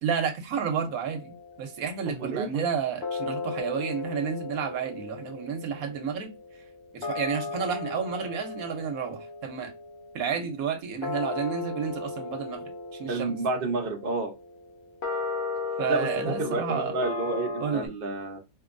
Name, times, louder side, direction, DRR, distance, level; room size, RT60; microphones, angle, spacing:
voice 1, 0.0-6.3 6.9-9.7 10.1-13.4 15.8-16.9 17.6-17.9, right 7 dB, 80° right, 1.2 m, -31 dB
sound 1, 0.9-2.2 3.0-17.9, left 4 dB, 55° left, 1.2 m, -36 dB
voice 2, 2.1-2.6 13.1-14.3 15.9-16.1 16.4-18.4, right 3 dB, 45° right, 0.9 m, -30 dB
4.5 x 2.8 x 2.5 m
omnidirectional pair, 1.5 m